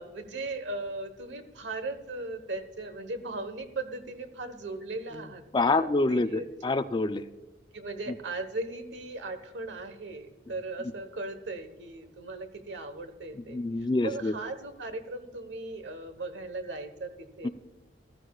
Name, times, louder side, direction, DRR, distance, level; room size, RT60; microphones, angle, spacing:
voice 1, 0.0-6.8 7.7-13.6 14.0-17.5, right 2 dB, 90° right, 10 dB, 1.2 m, -38 dB
voice 2, 5.5-7.3 13.4-14.3 17.4-17.5, left 3 dB, 25° left, 11 dB, 0.4 m, -26 dB
14.5 x 14.5 x 2.4 m, 1.2 s
head